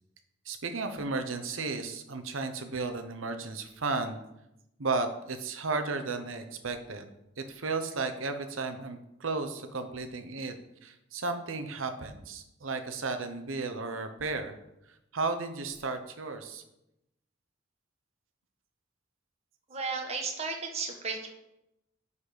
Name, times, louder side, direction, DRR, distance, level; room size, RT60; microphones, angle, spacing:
voice 1, 0.4-4.2 4.8-7.1 7.4-10.6 10.8-14.5 14.9-16.6, right 3 dB, 80° right, 7 dB, 0.9 m, -34 dB
voice 2, 19.7-21.3, right 4 dB, 35° right, 2 dB, 1.2 m, -34 dB
9.7 x 4.2 x 5.1 m, 0.87 s
head